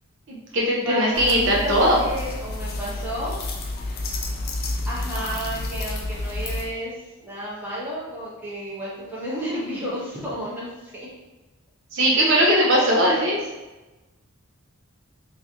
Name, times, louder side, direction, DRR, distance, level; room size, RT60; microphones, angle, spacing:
voice 1, 0.3-2.0 5.2-5.3 11.9-13.4, equal, 55° right, -3 dB, 0.6 m, -20 dB
voice 2, 0.8-3.3 4.9-6.9 7.2-11.1 12.1-12.5 13.1-13.3, equal, 10° right, -8 dB, 0.9 m, -32 dB
sound 1, 1.1-6.7, left 2 dB, 45° left, 0.4 m, -30 dB
3.1 x 2.7 x 3.5 m, 1.1 s
head